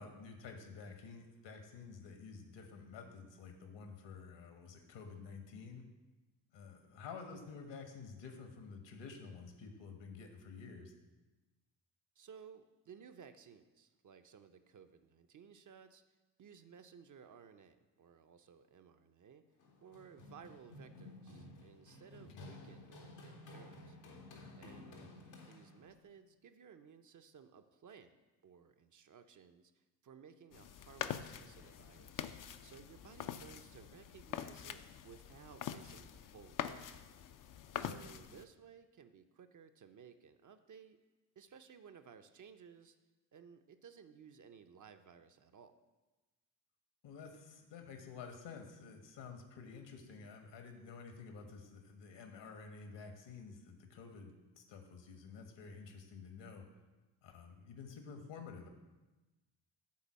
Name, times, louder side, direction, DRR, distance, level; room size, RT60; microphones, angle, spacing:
voice 1, 0.0-5.8 6.5-10.9 22.3-22.5 25.0-25.1 37.8-38.0 47.0-56.7 57.2-58.7, left 5 dB, 60° left, 5 dB, 1.3 m, -51 dB
voice 2, 12.2-19.4 19.8-24.0 24.6-28.2 28.4-32.3 32.6-36.9 37.7-41.0 41.4-43.0 43.3-45.7, right 7 dB, 40° right, 8 dB, 0.7 m, -58 dB
Run, 19.6-26.0, left 1 dB, 80° left, 1.4 m, -54 dB
sound 1, 30.5-38.4, left 9 dB, 45° left, 0.5 m, -45 dB
8.5 x 4.0 x 6.2 m, 1.2 s
hypercardioid pair, 45°, 48 cm